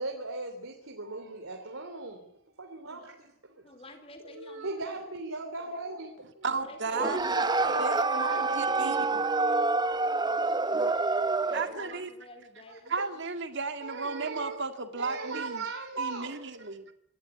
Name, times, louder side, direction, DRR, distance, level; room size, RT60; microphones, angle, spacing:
voice 1, 0.0-2.3 2.6-3.6 4.4-6.4 7.0-9.2 9.5-9.7 10.5-10.9 11.3-11.4 11.7-11.9 12.7-12.8 13.8-14.6 14.9-16.3, right 3 dB, 90° right, 3.1 m, -38 dB
voice 2, 3.6-5.1 6.5-7.4 7.9-9.2 11.4-13.0, left 1 dB, 30° left, 4.1 m, -50 dB
voice 3, 6.4-7.4 7.8-9.2 11.5-12.1 12.9-15.7 16.0-16.9, right 4 dB, 60° right, 2.0 m, -34 dB
sound 1, 6.9-11.8, right 3 dB, 20° right, 0.8 m, -27 dB
27.0 x 13.0 x 9.7 m
head